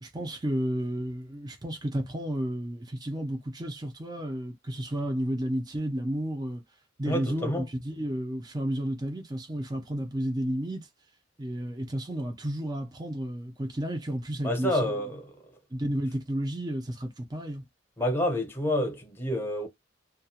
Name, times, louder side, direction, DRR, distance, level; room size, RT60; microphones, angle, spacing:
voice 1, 0.0-6.6 7.0-10.9 11.4-14.9 15.7-17.6, equal, 20° right, 0.6 m, -32 dB
voice 2, 7.1-7.7 14.4-15.3 18.0-19.7, left 1 dB, 10° left, 0.8 m, -28 dB
2.4 x 2.3 x 2.8 m
head